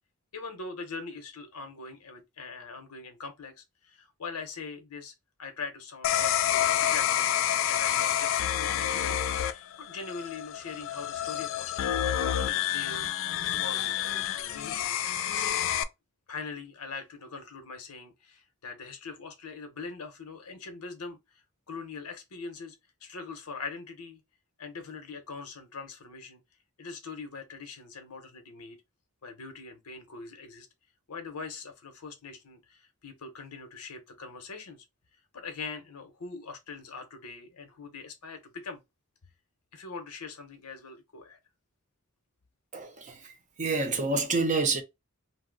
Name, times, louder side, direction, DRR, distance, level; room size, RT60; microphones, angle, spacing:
voice 1, 0.3-5.1 5.4-7.3 7.6-12.0 12.4-13.1 13.5-15.0 15.6-15.7 16.3-22.8 23.0-24.2 24.6-26.4 26.8-28.8 29.2-30.7 31.1-34.8 35.3-38.8 39.7-41.4, left 4 dB, 80° left, 0.8 m, -42 dB
sound 1, 6.0-15.8, left 10 dB, 60° left, 0.3 m, -28 dB
voice 2, 42.7-44.8, right 3 dB, 35° right, 0.6 m, -28 dB
2.7 x 2.0 x 3.8 m
head